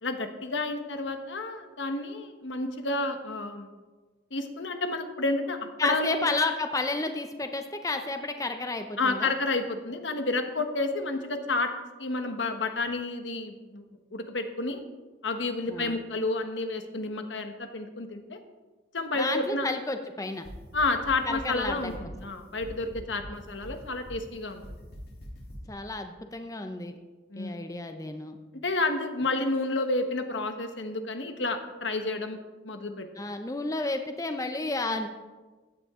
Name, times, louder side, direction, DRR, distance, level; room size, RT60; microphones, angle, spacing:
voice 1, 0.0-3.7 4.3-6.3 9.0-11.7 12.0-13.8 14.1-14.8 15.2-18.4 18.9-19.7 20.7-24.6 27.3-27.6 28.5-32.4 32.6-33.1, left 2 dB, 85° left, 6 dB, 1.3 m, -30 dB
voice 2, 5.8-9.3 15.7-16.0 19.1-20.5 21.3-22.1 25.7-26.9 27.4-28.4 33.2-35.1, left 2 dB, 20° left, 7 dB, 0.6 m, -31 dB
sound 1, 20.3-25.7, equal, 60° left, 3.6 m, -45 dB
15.5 x 9.8 x 3.7 m, 1.3 s
head